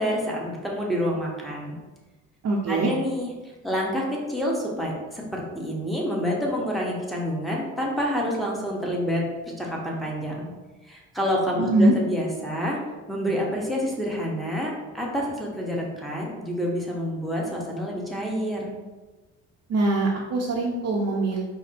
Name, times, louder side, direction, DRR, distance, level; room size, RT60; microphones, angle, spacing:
voice 1, 0.0-1.8 2.7-3.3 3.6-10.5 10.8-12.8 13.1-18.7, equal, ahead, -3 dB, 1.0 m, -28 dB
voice 2, 2.4-2.9 11.6-11.9 19.7-21.4, right 2 dB, 60° right, -3 dB, 0.7 m, -22 dB
5.0 x 2.1 x 4.2 m, 1.2 s
cardioid pair, 90°, 30 cm